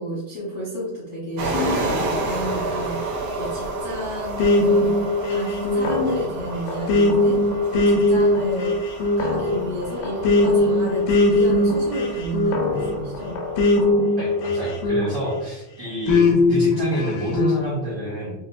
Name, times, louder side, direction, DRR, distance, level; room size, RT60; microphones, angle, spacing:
voice 1, 0.0-5.0 5.3-7.4 7.7-8.8 9.2-13.4, equal, 55° left, -9 dB, 0.7 m, -31 dB
sound 1, 1.4-13.8, right 2 dB, 65° right, 1.6 m, -31 dB
sound 2, 4.4-15.4 16.1-17.6, left 2 dB, 85° left, 2.2 m, -20 dB
voice 2, 14.1-18.3, right 1 dB, 80° right, -8 dB, 0.8 m, -28 dB
6.5 x 2.2 x 2.6 m, 0.99 s
omnidirectional pair, 3.6 m